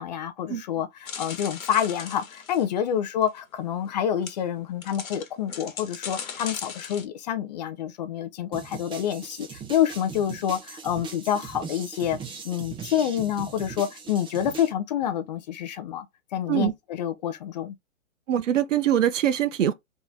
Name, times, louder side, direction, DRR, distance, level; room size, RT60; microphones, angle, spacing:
voice 1, 0.0-16.1 16.3-17.8, left 9 dB, 30° left, 0.5 m, -28 dB
sound 1, 1.1-2.6 3.2-3.3 3.8-3.9 4.2-4.3 4.8-7.0, left 6 dB, 75° left, 1.3 m, -38 dB
sound 2, 8.5-14.7, right 5 dB, 10° right, 0.7 m, -40 dB
voice 2, 18.3-19.7, right 10 dB, 60° right, 0.8 m, -23 dB
3.7 x 3.0 x 3.4 m
hypercardioid pair, 125°, 42 cm